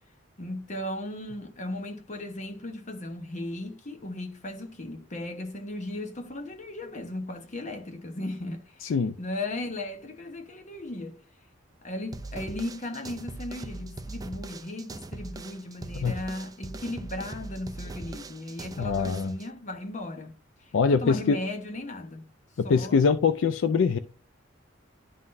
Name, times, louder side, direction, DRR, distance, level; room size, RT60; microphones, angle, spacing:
voice 1, 0.4-11.2 11.8-20.3 20.9-22.3 22.6-23.0, left 1 dB, 40° left, 1.0 m, -36 dB
voice 2, 8.8-9.1 15.9-16.1 18.8-19.3 20.7-21.4 22.6-24.0, left 5 dB, 70° left, 0.4 m, -23 dB
sound 1, 12.1-19.5, right 2 dB, 20° right, 0.4 m, -40 dB
11.0 x 3.8 x 2.6 m
head